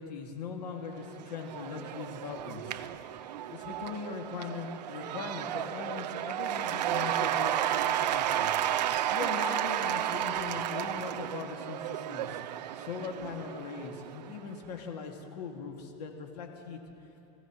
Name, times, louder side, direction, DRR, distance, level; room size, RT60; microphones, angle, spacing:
voice 1, 0.0-2.8 3.5-8.5 9.1-12.4 12.8-16.8, left 5 dB, 75° left, 2 dB, 2.1 m, -40 dB
Cheering / Applause / Crowd, 1.0-14.4, right 11 dB, 90° right, 0.5 m, -33 dB
25.0 x 15.5 x 3.1 m, 2.8 s
supercardioid pair, 140°, 21 cm